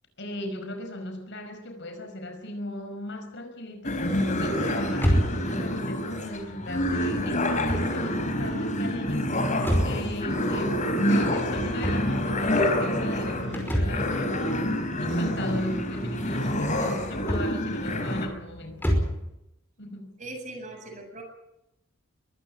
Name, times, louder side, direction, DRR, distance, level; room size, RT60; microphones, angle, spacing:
voice 1, 0.2-9.3 9.8-18.9 19.8-20.2, left 1 dB, 60° left, 6 dB, 5.3 m, -37 dB
sound 1, 3.8-18.3, left 1 dB, 40° left, 3.9 m, -27 dB
sound 2, 4.9-19.3, equal, 10° left, 5.3 m, -31 dB
voice 2, 20.2-21.2, right 2 dB, 40° right, 3 dB, 7.7 m, -39 dB
23.0 x 16.0 x 8.8 m, 0.86 s
head